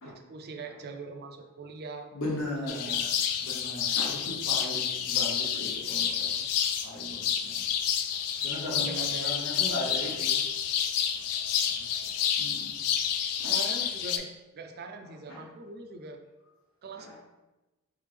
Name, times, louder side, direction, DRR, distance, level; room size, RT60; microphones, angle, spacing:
voice 1, 0.0-2.1 2.4-3.0 4.7-4.9 8.7-9.4 11.7-11.9 13.5-16.2 16.8-17.1, right 3 dB, 45° right, 5 dB, 0.4 m, -42 dB
voice 2, 2.1-3.1 3.4-6.5 6.8-7.7 8.4-10.4 12.0-12.1 12.4-12.8 13.4-13.6 15.0-15.5 16.9-17.1, left 1 dB, 65° left, -4 dB, 0.9 m, -38 dB
sound 1, 2.7-14.2, left 8 dB, 80° left, 0.4 m, -29 dB
3.6 x 3.2 x 3.4 m, 1.0 s
head